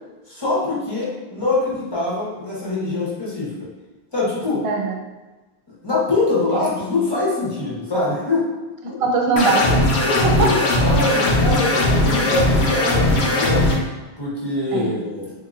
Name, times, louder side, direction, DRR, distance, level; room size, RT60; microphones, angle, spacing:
voice 1, 0.3-3.7 4.1-4.7 5.8-8.5 8.8-9.0 10.0-13.7 14.2-15.3, left 2 dB, 25° left, -7 dB, 1.1 m, -24 dB
voice 2, 4.6-5.0 6.5-6.7 9.0-9.9 10.2-10.6 10.9-11.0 14.7-15.0, right 4 dB, 55° right, 2 dB, 0.4 m, -21 dB
sound 1, 9.4-13.7, left 1 dB, 80° left, 0.9 m, -18 dB
3.6 x 2.8 x 2.5 m, 1.2 s
omnidirectional pair, 1.1 m